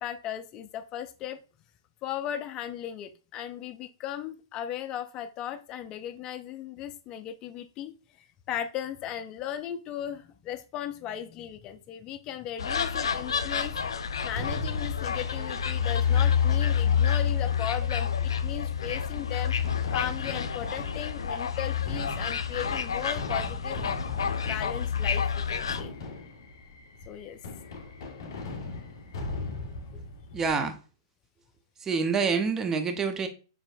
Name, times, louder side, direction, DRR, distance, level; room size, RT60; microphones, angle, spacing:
voice 1, 0.0-1.4 2.0-7.9 8.2-13.7 14.2-19.5 19.9-23.9 24.5-25.9 27.1-27.4, left 10 dB, 30° left, 0.5 m, -37 dB
sound 1, 12.6-25.8, left 7 dB, 85° left, 0.5 m, -28 dB
Fireworks, 14.3-30.5, left 2 dB, 65° left, 1.8 m, -40 dB
voice 2, 30.3-30.8 31.8-33.3, right 5 dB, 15° right, 0.7 m, -27 dB
6.6 x 3.0 x 2.6 m
hypercardioid pair, 130°, 3 cm